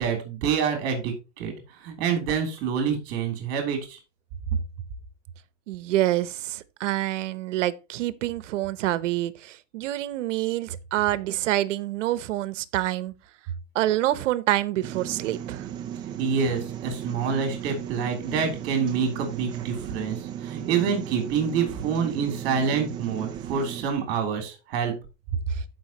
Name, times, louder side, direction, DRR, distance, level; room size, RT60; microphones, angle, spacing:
voice 1, 0.0-1.5 1.8-4.0 16.2-24.9, right 6 dB, 40° right, 3.0 m, -27 dB
voice 2, 5.7-13.1 13.7-15.7, right 15 dB, 80° right, 0.9 m, -27 dB
sound 1, 14.8-23.8, right 10 dB, 15° right, 0.4 m, -36 dB
14.0 x 5.1 x 2.9 m
supercardioid pair, 170°, 36 cm